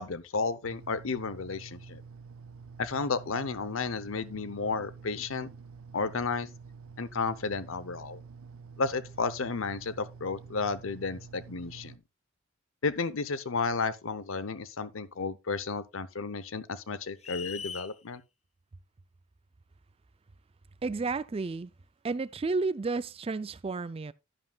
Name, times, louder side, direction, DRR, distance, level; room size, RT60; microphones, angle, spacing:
voice 1, 0.0-2.0 2.8-5.5 5.9-6.5 7.0-8.2 8.8-11.9 12.8-18.2, left 4 dB, 70° left, 0.8 m, -32 dB
sound 1, 0.6-12.0, right 5 dB, 85° right, 0.6 m, -48 dB
sound 2, 17.2-17.9, left 7 dB, 30° left, 0.5 m, -39 dB
voice 2, 20.8-21.7 22.0-24.1, right 3 dB, 30° right, 0.4 m, -31 dB
11.0 x 10.0 x 2.3 m
head